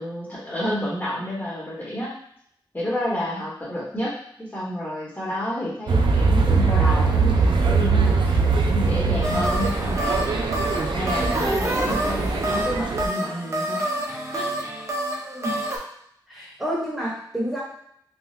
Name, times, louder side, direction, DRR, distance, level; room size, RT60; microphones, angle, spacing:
voice 1, 0.0-2.2 2.7-10.2 10.9-14.5, equal, 25° left, -7 dB, 1.1 m, -30 dB
sound 1, 5.9-13.1, right 4 dB, 80° right, 0.4 m, -21 dB
sound 2, 9.2-15.8, right 1 dB, 35° right, 0.6 m, -28 dB
voice 2, 11.1-11.5 15.2-15.6 16.3-17.6, equal, 5° right, -7 dB, 1.1 m, -30 dB
3.4 x 2.3 x 2.7 m, 0.68 s
wide cardioid pair, 95°, 8 cm